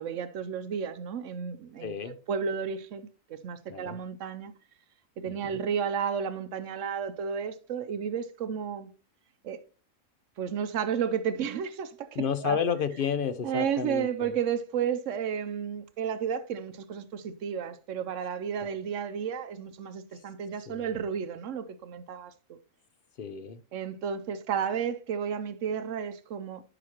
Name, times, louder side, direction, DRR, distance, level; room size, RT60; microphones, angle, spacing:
voice 1, 0.0-4.5 5.2-8.9 9.4-9.6 10.4-12.6 13.4-22.6 23.7-26.6, right 7 dB, 70° right, 0.9 m, -32 dB
voice 2, 1.8-2.2 3.7-4.0 5.3-5.4 12.2-14.3 20.7-20.9 23.2-23.6, left 7 dB, 55° left, 0.6 m, -31 dB
11.0 x 5.0 x 2.9 m
omnidirectional pair, 1.4 m